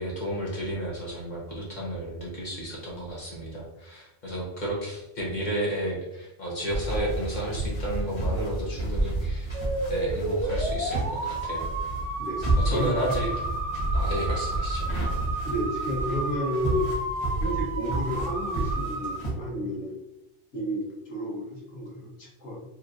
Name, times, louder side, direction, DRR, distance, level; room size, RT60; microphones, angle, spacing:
voice 1, 0.0-9.5 9.9-11.7 12.6-13.3 13.9-14.9, right 1 dB, 40° left, -4 dB, 1.2 m, -32 dB
sound 1, 6.7-19.3, right 2 dB, 25° left, 1.2 m, -30 dB
sound 2, 9.5-19.2, right 2 dB, 70° right, 1.0 m, -32 dB
voice 2, 12.2-12.9 15.4-16.9 17.4-20.0 20.5-22.6, equal, 70° left, -3 dB, 1.5 m, -31 dB
4.4 x 3.2 x 2.6 m, 0.89 s
omnidirectional pair, 1.3 m